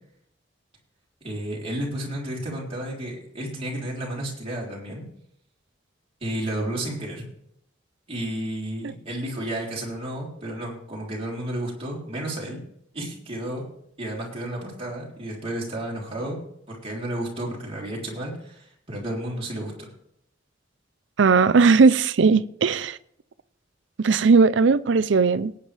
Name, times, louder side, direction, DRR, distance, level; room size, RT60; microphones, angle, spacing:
voice 1, 1.2-5.0 6.2-7.2 8.1-12.6 12.9-13.7 14.0-19.9, right 1 dB, 30° right, 3.6 m, -32 dB
voice 2, 21.2-23.0 24.0-25.5, right 4 dB, 70° right, 0.5 m, -18 dB
19.0 x 9.0 x 3.4 m
head